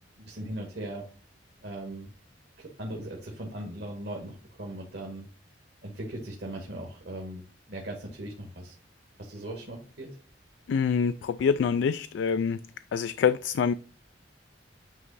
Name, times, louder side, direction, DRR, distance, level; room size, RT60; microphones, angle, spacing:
voice 1, 0.2-1.1 1.6-2.1 2.6-5.3 5.8-7.4 7.7-8.8 9.2-10.1, right 1 dB, 60° right, 1.4 m, -39 dB
voice 2, 10.7-12.6 12.9-13.7, left 6 dB, 75° left, 0.3 m, -25 dB
9.1 x 3.1 x 4.1 m
head